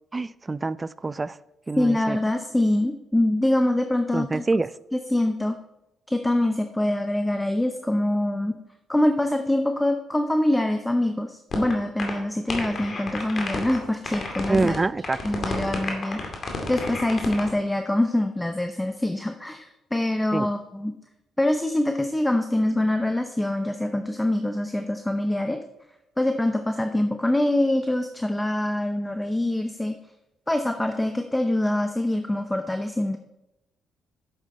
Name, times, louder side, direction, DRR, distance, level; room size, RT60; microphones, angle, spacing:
voice 1, 0.1-1.4 1.7-2.2 4.1-4.7 14.5-15.2 20.3-20.5, right 3 dB, 25° right, 19 dB, 0.3 m, -26 dB
voice 2, 1.8-4.4 4.9-5.6 6.1-8.6 8.9-14.8 15.2-16.2 16.7-20.9 21.4-25.6 26.2-30.0 30.5-33.2, left 1 dB, 10° left, 6 dB, 0.7 m, -24 dB
sound 1, 11.5-11.7 12.0-12.1 12.5-13.8 14.0-14.8 15.0-17.5, left 4 dB, 50° left, 2.4 m, -30 dB
10.0 x 7.4 x 4.3 m, 0.90 s
cardioid pair, 90°, 0 cm